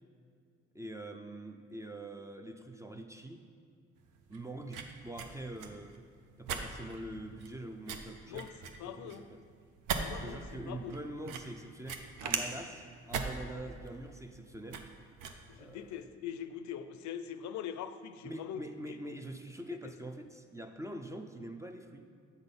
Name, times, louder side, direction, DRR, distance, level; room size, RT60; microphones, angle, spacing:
voice 1, 0.7-3.4 4.3-6.0 6.4-8.5 8.8-9.4 10.1-14.9 15.6-16.0 18.2-22.1, right 1 dB, 10° right, 6 dB, 0.4 m, -44 dB
sound 1, 4.0-16.0, right 5 dB, 85° right, 0.6 m, -41 dB
voice 2, 8.3-9.3 9.9-10.9 15.5-19.0 19.7-20.0, left 9 dB, 70° left, 11 dB, 0.5 m, -43 dB
8.0 x 4.0 x 5.2 m, 2.2 s
cardioid pair, 90°, 30 cm